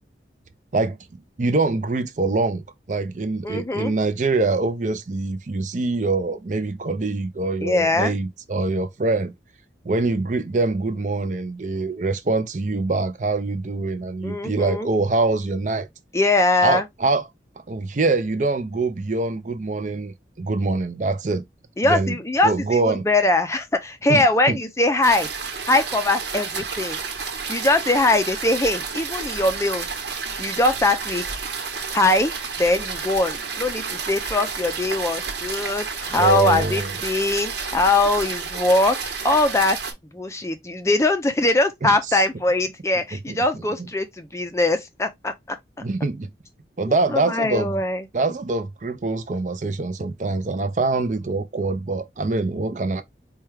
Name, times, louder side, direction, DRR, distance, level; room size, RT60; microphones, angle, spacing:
voice 1, 1.4-2.6 2.9-9.3 9.8-15.9 16.6-17.2 17.7-21.4 21.8-22.2 22.4-23.0 24.1-24.6 36.2-36.9 41.8-41.9 43.3-43.6 45.8-46.3 46.8-47.8 48.1-53.0, right 3 dB, 45° right, 0.5 m, -24 dB
voice 2, 3.4-3.9 7.6-8.1 14.2-14.9 16.1-16.8 21.8-25.3 25.7-27.0 27.5-29.9 30.4-31.2 31.9-32.3 32.6-39.0 39.2-39.8 40.1-45.6 46.9-48.0, left 2 dB, 15° left, 0.4 m, -21 dB
sound 1, 25.0-39.9, right 5 dB, 75° right, 1.1 m, -31 dB
4.5 x 2.3 x 3.2 m
head